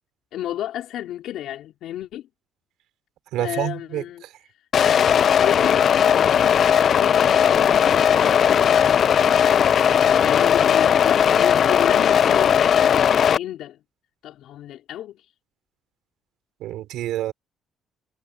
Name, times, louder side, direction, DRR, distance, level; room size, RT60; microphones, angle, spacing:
voice 1, 0.3-2.3 3.4-4.2 5.4-9.1 10.2-13.8 14.2-15.2, left 12 dB, 70° left, 4.8 m, -32 dB
voice 2, 3.3-4.0 16.6-17.3, right 14 dB, 75° right, 3.8 m, -27 dB
sound 1, 4.7-13.4, left 8 dB, 40° left, 0.3 m, -17 dB
cardioid pair, 150°, 0 cm